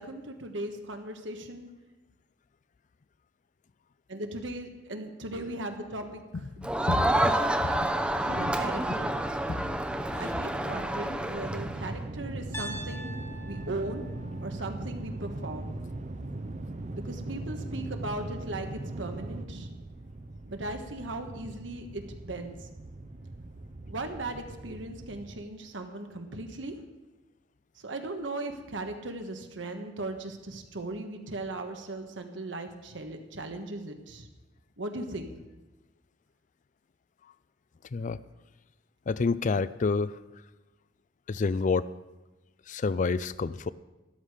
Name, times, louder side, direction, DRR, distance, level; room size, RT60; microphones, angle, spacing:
voice 1, 0.0-1.7 4.1-6.2 8.2-9.1 10.2-13.1 13.4-14.1 14.4-15.7 16.9-18.7 19.0-19.7 20.4-22.5 23.9-26.8 27.8-34.3 34.8-35.3, right 2 dB, 85° right, 5 dB, 1.5 m, -38 dB
voice 2, 6.5-7.4 7.7-7.9 8.4-8.6 9.5-9.6 10.1-10.2 37.9-38.2 39.1-40.2 41.3-41.9 42.7-43.7, left 4 dB, 45° left, 17 dB, 0.4 m, -29 dB
Crowd, 6.6-12.0, right 1 dB, 5° right, 0.7 m, -29 dB
sound 1, 7.9-25.5, right 2 dB, 40° right, 0.7 m, -40 dB
Piano, 12.5-16.6, equal, 15° left, 1.2 m, -45 dB
13.0 x 11.5 x 5.0 m, 1.1 s
head